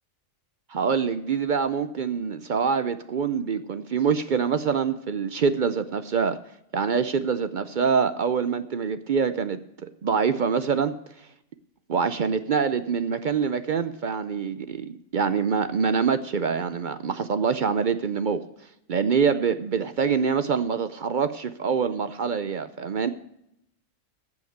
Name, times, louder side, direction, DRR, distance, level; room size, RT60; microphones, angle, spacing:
voice 1, 0.7-6.4 6.7-10.9 11.9-18.4 18.9-23.1, right 6 dB, 55° right, 12 dB, 0.5 m, -25 dB
15.0 x 5.7 x 7.9 m, 0.79 s
omnidirectional pair, 1.3 m